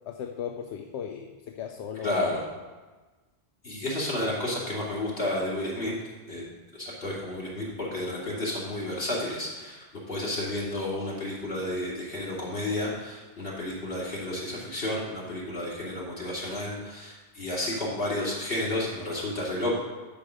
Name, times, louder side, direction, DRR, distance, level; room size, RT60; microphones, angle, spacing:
voice 1, 0.1-2.2, left 8 dB, 80° left, 4 dB, 0.9 m, -37 dB
voice 2, 2.0-2.4 3.6-5.9 6.3-6.4 6.7-9.8 10.1-19.7, left 1 dB, 55° left, -5 dB, 2.9 m, -31 dB
11.0 x 4.9 x 6.4 m, 1.3 s
omnidirectional pair, 1.1 m